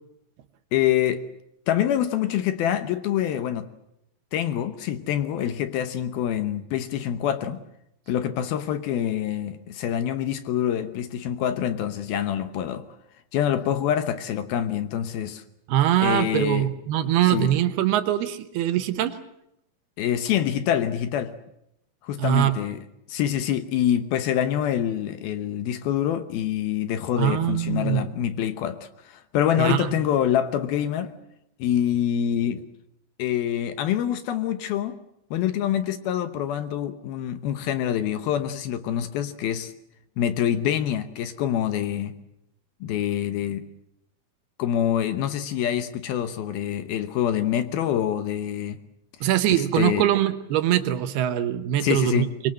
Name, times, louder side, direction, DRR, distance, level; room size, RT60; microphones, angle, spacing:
voice 1, 0.7-1.2 1.7-3.7 4.3-7.6 8.1-12.8 13.3-15.4 16.0-16.7 17.3-17.5 20.0-21.3 22.0-22.8 23.1-31.1 31.6-32.6 33.2-35.0 35.3-39.7 40.2-42.1 42.8-43.6 44.6-48.8 49.5-50.0 51.8-52.3, left 10 dB, 70° left, 10 dB, 2.6 m, -26 dB
voice 2, 15.7-19.2 22.2-22.6 27.2-28.1 29.6-29.9 49.2-52.3, right 12 dB, 75° right, 10 dB, 2.9 m, -23 dB
24.5 x 22.5 x 7.7 m, 0.80 s
omnidirectional pair, 5.0 m